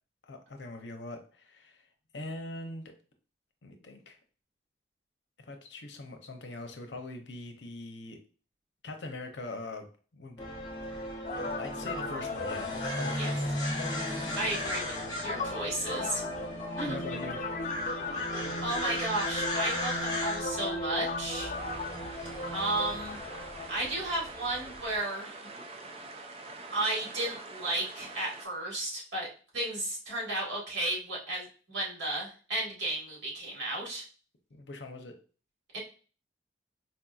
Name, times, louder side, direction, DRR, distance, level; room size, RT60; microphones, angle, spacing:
voice 1, 0.2-1.9 2.1-2.9 3.6-4.2 5.4-8.2 8.8-9.9 10.1-10.4 11.6-12.7 13.0-13.5 16.8-17.4 34.5-35.1, left 2 dB, 80° left, 5 dB, 0.7 m, -42 dB
sound 1, 10.4-25.0, equal, 20° left, 0.8 m, -36 dB
sound 2, 11.2-23.7, left 3 dB, 40° left, 0.4 m, -38 dB
voice 2, 14.3-14.9 15.2-16.2 16.8-17.0 18.6-21.5 22.5-23.2 23.7-25.3 26.7-29.3 29.5-34.0 35.7-35.8, right 2 dB, 90° right, -3 dB, 1.7 m, -33 dB
sound 3, 21.5-28.5, right 3 dB, 35° right, 0.3 m, -45 dB
4.3 x 2.8 x 2.3 m, 0.38 s
head